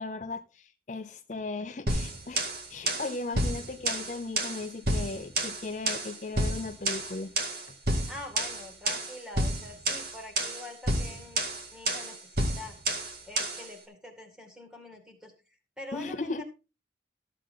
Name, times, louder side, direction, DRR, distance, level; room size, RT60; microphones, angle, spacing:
voice 1, 0.0-7.3 7.7-7.8 15.9-16.4, left 3 dB, 45° left, 8 dB, 0.6 m, -37 dB
sound 1, 1.9-13.7, right 1 dB, 55° right, 2.2 m, -30 dB
voice 2, 8.1-12.8 13.3-15.3 15.8-16.4, left 2 dB, 5° right, 4 dB, 2.1 m, -45 dB
13.5 x 7.5 x 3.8 m, 0.30 s
head